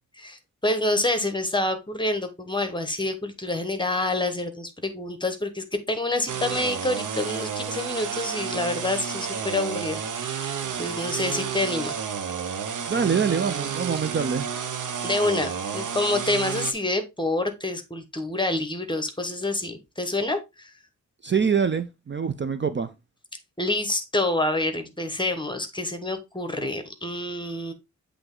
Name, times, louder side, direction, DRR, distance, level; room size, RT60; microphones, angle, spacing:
voice 1, 0.2-12.0 15.0-20.7 23.6-27.7, left 2 dB, 15° left, 1.2 m, -27 dB
sound 1, 6.3-16.7, right 7 dB, 80° right, 0.9 m, -31 dB
voice 2, 12.9-14.5 21.2-22.9, right 6 dB, 40° right, 0.5 m, -24 dB
7.9 x 3.4 x 3.8 m
wide cardioid pair, 105°, 30 cm